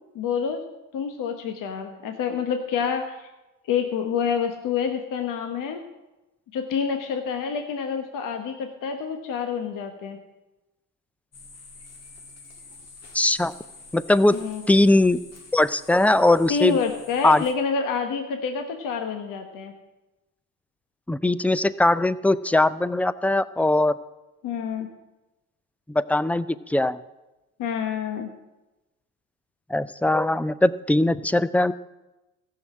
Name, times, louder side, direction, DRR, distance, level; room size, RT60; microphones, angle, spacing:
voice 1, 0.1-0.6 0.9-3.3 3.6-5.8 6.5-10.2 14.3-14.6 16.5-19.7 24.4-24.9 27.6-28.3, left 6 dB, 60° left, 5 dB, 1.3 m, -28 dB
sound 1, 11.3-17.5, left 3 dB, 45° left, 2.0 m, -47 dB
voice 2, 13.1-13.5 13.9-14.4 14.7-15.2 15.5-16.8 17.2-17.4 21.1-23.9 25.9-27.0 29.7-31.7, left 2 dB, 5° left, 17 dB, 0.4 m, -20 dB
15.0 x 6.4 x 7.4 m, 1.0 s
hypercardioid pair, 70°, 36 cm